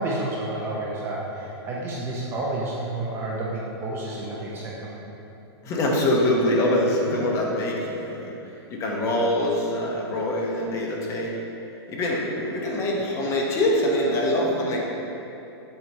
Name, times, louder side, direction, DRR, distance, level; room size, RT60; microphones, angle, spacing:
voice 1, 0.0-4.9, right 2 dB, 15° right, -4 dB, 0.6 m, -30 dB
voice 2, 5.6-8.4 8.7-11.4 11.9-14.8, left 1 dB, 20° left, -2 dB, 0.8 m, -24 dB
7.6 x 2.9 x 5.4 m, 3.0 s
hypercardioid pair, 160°, 14 cm